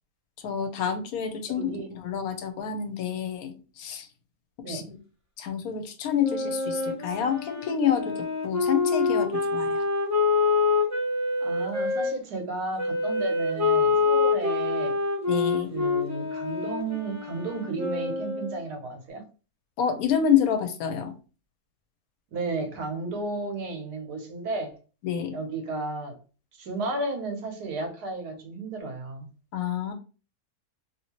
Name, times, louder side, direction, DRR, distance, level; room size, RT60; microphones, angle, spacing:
voice 1, 0.4-4.1 4.7-5.0 5.4-9.9 15.3-15.7 19.8-21.1 25.0-25.4 29.5-29.9, left 8 dB, 75° left, 7 dB, 1.1 m, -28 dB
voice 2, 1.5-1.9 4.6-4.9 11.4-15.0 15.7-19.2 22.3-24.7 25.3-26.2 26.6-29.3, right 3 dB, 85° right, 3 dB, 1.4 m, -33 dB
Wind instrument woodwind instrument, 6.2-12.1 12.8-18.6, left 4 dB, 15° right, 0.6 m, -26 dB
3.0 x 2.7 x 2.9 m, 0.35 s
omnidirectional pair, 1.6 m